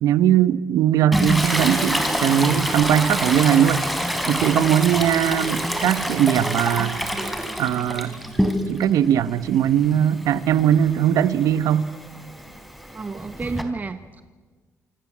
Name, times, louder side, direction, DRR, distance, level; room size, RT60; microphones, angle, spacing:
voice 1, 0.0-3.8 4.3-7.0 7.6-8.1 8.7-11.9, right 10 dB, 85° right, 14 dB, 1.2 m, -20 dB
Toilet flush, 1.1-8.9 9.3-13.6, equal, ahead, 3.8 m, -27 dB
Harp, 2.8-6.5 7.1-7.5 8.1-8.2, right 5 dB, 60° right, 3.4 m, -40 dB
voice 2, 12.9-14.2, right 3 dB, 30° right, 9 dB, 1.4 m, -31 dB
28.0 x 26.0 x 7.5 m, 1.4 s
cardioid pair, 110°, 6 cm